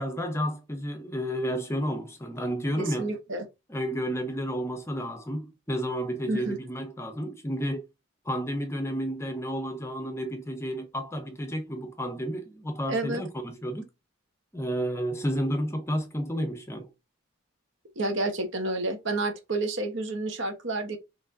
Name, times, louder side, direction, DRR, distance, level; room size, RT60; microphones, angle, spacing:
voice 1, 0.0-3.1 3.7-7.9 8.2-13.9 14.5-16.9, equal, 15° left, 0.6 m, -31 dB
voice 2, 2.8-3.5 6.3-6.6 12.9-13.2 18.0-21.0, right 2 dB, 60° right, 1.2 m, -30 dB
6.0 x 3.3 x 2.6 m
head